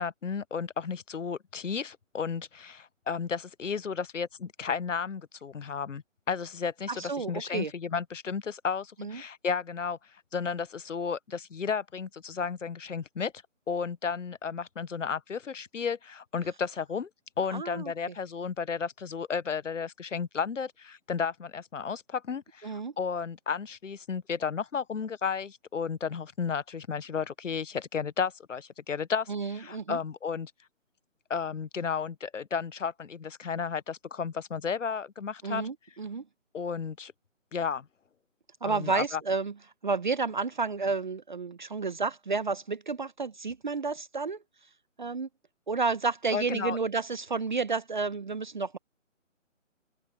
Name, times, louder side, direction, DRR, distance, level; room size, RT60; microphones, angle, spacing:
voice 1, 0.0-10.0 10.3-13.3 13.7-17.1 17.4-30.5 31.3-35.6 36.5-37.1 37.5-37.9 38.6-39.2 46.3-46.8, left 6 dB, 70° left, 1.1 m, -33 dB
voice 2, 6.9-7.7 9.0-9.2 17.5-17.9 22.6-22.9 29.3-30.0 35.4-36.2 38.6-39.5 39.8-44.4 45.0-45.3 45.7-48.8, right 4 dB, 35° right, 0.9 m, -31 dB
hypercardioid pair, 165°, 39 cm